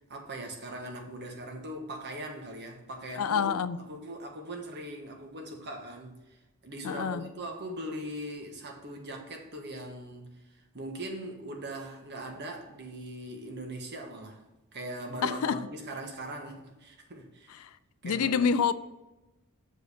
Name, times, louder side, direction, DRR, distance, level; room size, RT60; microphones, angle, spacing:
voice 1, 0.1-3.5 3.8-6.4 6.6-10.3 10.7-14.4 14.7-17.6 18.0-18.5, right 1 dB, 50° right, 1.4 m, -40 dB
voice 2, 3.2-3.9 6.8-7.3 15.2-15.7 17.5-17.7 18.0-18.7, left 6 dB, 70° left, 0.4 m, -28 dB
6.5 x 5.2 x 5.0 m
head